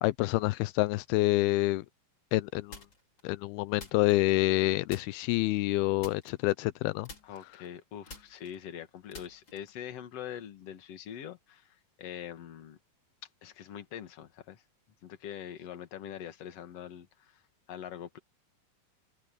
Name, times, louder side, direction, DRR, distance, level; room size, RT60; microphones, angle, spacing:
voice 1, 0.0-1.8 2.3-2.8 3.2-7.1, left 19 dB, 85° left, 2.5 m, -27 dB
sound 1, 2.7-3.2 3.8-4.6 4.9-5.4 6.0-6.8 7.0-9.8, left 3 dB, 30° left, 5.0 m, -49 dB
voice 2, 7.2-12.8 13.4-14.6 15.0-17.4 17.7-18.2, left 9 dB, 50° left, 2.4 m, -43 dB
omnidirectional pair, 4.4 m